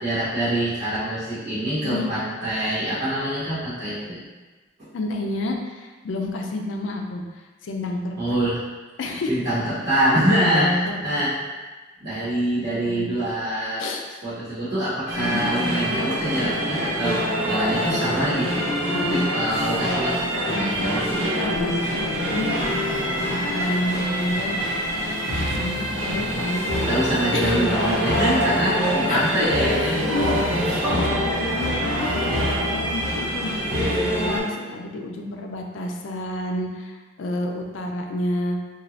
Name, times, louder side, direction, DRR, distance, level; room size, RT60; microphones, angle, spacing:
voice 1, 0.0-4.2 4.8-4.9 8.2-8.6 9.3-10.7 11.0-11.3 12.0-13.8 14.2-18.7 19.1-20.2 20.4-21.6 21.9-22.0 26.9-30.7, right 1 dB, 55° right, -14 dB, 1.3 m, -25 dB
voice 2, 4.9-8.4 9.0-9.3 10.4-11.2 12.7-13.1 13.8-14.0 15.2-15.4 18.9-19.3 21.4-21.8 22.3-22.8 23.3-24.6 25.5-26.6 26.9-27.0 27.3-27.6 29.1-29.5 29.8-32.4 32.7-38.6, left 1 dB, 75° left, 2 dB, 0.4 m, -30 dB
sound 1, 15.1-34.4, equal, 80° right, 0.8 m, -25 dB
sound 2, 21.8-30.9, left 1 dB, 35° right, 0.7 m, -37 dB
2.6 x 2.3 x 3.0 m, 1.3 s
head